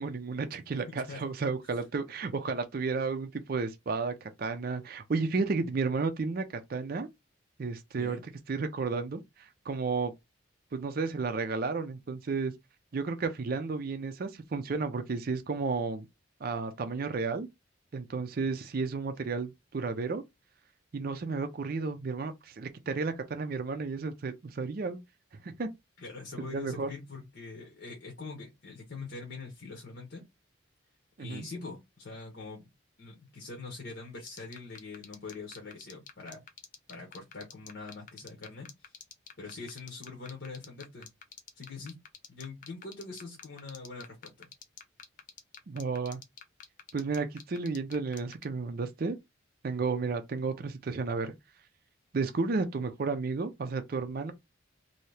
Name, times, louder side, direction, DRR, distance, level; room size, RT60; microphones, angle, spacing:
voice 1, 0.0-6.4 6.7-7.1 7.6-8.2 8.5-10.1 10.7-12.5 12.9-16.1 16.4-17.5 17.9-20.2 20.9-25.0 25.4-25.7 26.5-26.9 31.2-31.5 45.7-46.2 46.9-49.2 49.6-51.3 52.1-54.3, right 4 dB, 45° right, 0.4 m, -32 dB
voice 2, 26.0-30.2 31.2-32.7 33.0-36.4 36.9-38.9 39.4-41.1 41.6-41.9 42.3-44.5, left 3 dB, 55° left, 0.9 m, -43 dB
sound 1, 34.3-48.4, left 8 dB, 40° left, 0.5 m, -46 dB
2.8 x 2.7 x 3.2 m
head